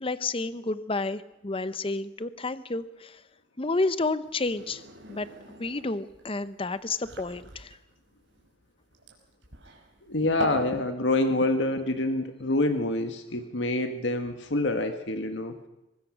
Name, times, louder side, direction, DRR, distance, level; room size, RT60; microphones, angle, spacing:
voice 1, 0.0-3.2 3.6-4.8 5.1-5.3 5.6-7.8, left 3 dB, 30° left, 14 dB, 0.8 m, -30 dB
sound 1, 4.2-10.7, right 3 dB, 90° right, 5.2 m, -41 dB
voice 2, 10.1-15.6, left 2 dB, 80° left, 7 dB, 1.7 m, -26 dB
23.5 x 20.0 x 6.3 m, 0.96 s
head